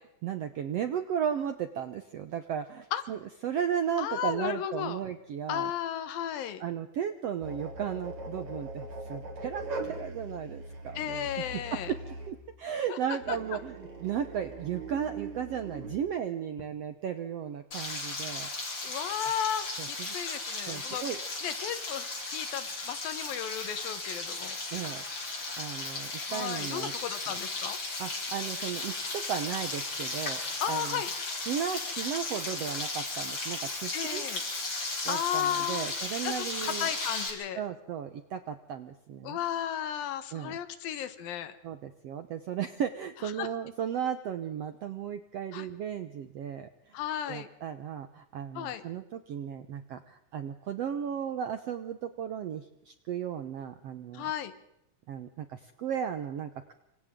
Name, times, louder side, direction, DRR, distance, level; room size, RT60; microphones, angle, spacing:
voice 1, 0.2-5.7 6.6-11.3 11.7-18.9 19.8-20.1 20.7-21.2 24.7-25.0 25.6-26.9 27.3-27.4 28.0-31.0 31.5-34.2 35.0-36.9 37.5-39.4 40.3-40.6 41.6-47.0 47.3-54.3 55.1-56.7, right 8 dB, 75° right, 9 dB, 1.5 m, -35 dB
voice 2, 4.0-5.0 5.5-6.6 11.0-11.9 12.9-13.0 13.3-13.4 18.8-21.1 21.4-24.6 26.3-27.8 30.6-31.1 33.9-34.4 35.1-35.9 36.2-36.3 36.6-37.6 39.2-41.6 43.4-43.5 45.5-45.7 46.9-47.5 48.6-48.8 54.1-54.5, left 10 dB, 80° left, 11 dB, 3.0 m, -34 dB
sound 1, 7.4-12.5 13.2-16.0, right 2 dB, 50° right, 4.6 m, -41 dB
Frying (food), 17.7-37.3, left 3 dB, 35° left, 4.7 m, -35 dB
27.5 x 26.0 x 3.7 m, 0.79 s
omnidirectional pair, 4.1 m